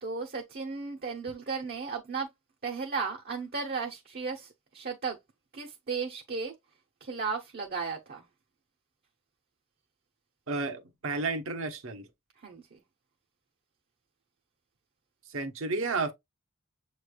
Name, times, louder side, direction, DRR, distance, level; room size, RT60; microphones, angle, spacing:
voice 1, 0.0-2.3 2.6-5.2 5.5-6.5 7.0-8.3 12.4-12.8, right 4 dB, 50° right, 0.7 m, -35 dB
voice 2, 10.5-12.1 15.3-16.1, right 3 dB, 70° right, 0.9 m, -32 dB
7.2 x 3.2 x 2.2 m
head